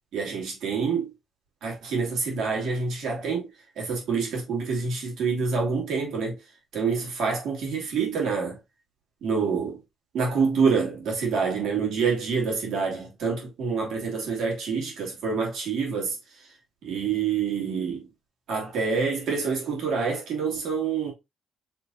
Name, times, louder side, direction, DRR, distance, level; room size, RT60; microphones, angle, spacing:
voice 1, 0.1-1.1 1.6-3.5 3.8-6.4 6.7-8.6 9.2-9.8 10.1-16.2 16.8-18.1 18.5-21.1, right 5 dB, 80° right, 2.2 m, -27 dB
4.5 x 3.3 x 2.6 m
cardioid pair, 90°, 0 cm